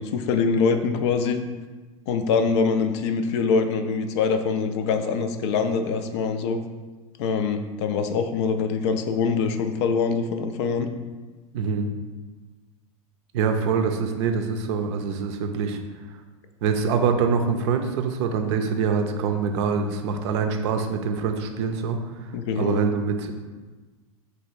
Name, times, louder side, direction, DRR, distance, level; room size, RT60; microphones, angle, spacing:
voice 1, 0.0-1.4 2.1-6.6 7.2-10.9 22.3-22.9, left 5 dB, 55° left, 8 dB, 0.4 m, -24 dB
voice 2, 11.5-11.9 13.3-15.8 16.6-23.3, right 5 dB, 55° right, 5 dB, 0.5 m, -25 dB
3.2 x 2.8 x 4.5 m, 1.3 s
figure-of-eight pair, 90°, 18 cm